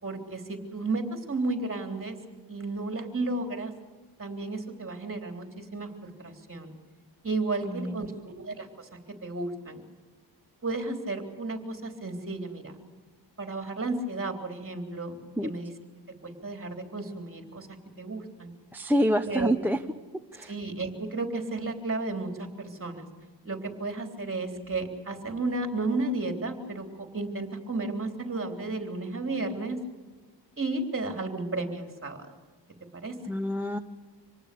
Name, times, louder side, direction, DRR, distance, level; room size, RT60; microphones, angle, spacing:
voice 1, 0.0-2.2 2.5-3.7 4.2-6.7 7.2-8.9 9.2-9.8 10.6-12.7 13.4-15.7 16.2-17.7 18.0-18.5 19.2-19.5 20.4-23.1 23.4-29.8 30.6-32.2 32.9-33.2, right 2 dB, 30° right, 4 dB, 3.5 m, -33 dB
voice 2, 7.6-8.1 15.4-15.5 18.7-19.8 20.3-20.5 33.3-33.8, equal, 5° right, 9 dB, 0.8 m, -27 dB
26.0 x 19.0 x 6.9 m, 1.3 s
wide cardioid pair, 100°, 42 cm